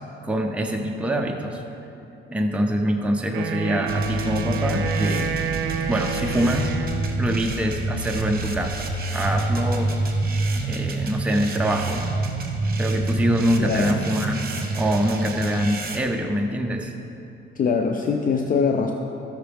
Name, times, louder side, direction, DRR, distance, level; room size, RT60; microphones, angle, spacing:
voice 1, 0.2-1.6 2.3-5.3 5.9-6.7 7.2-10.0 10.6-12.1 12.8-14.4 14.7-16.9, equal, 5° right, 2 dB, 0.6 m, -25 dB
Wind instrument woodwind instrument, 3.3-7.3, right 5 dB, 75° right, 0.6 m, -29 dB
sound 1, 3.9-16.0, right 2 dB, 50° right, 1.1 m, -27 dB
voice 2, 13.6-14.0 17.6-18.9, left 5 dB, 45° left, 3 dB, 0.5 m, -22 dB
13.5 x 5.9 x 3.5 m, 2.8 s
cardioid pair, 90°, 20 cm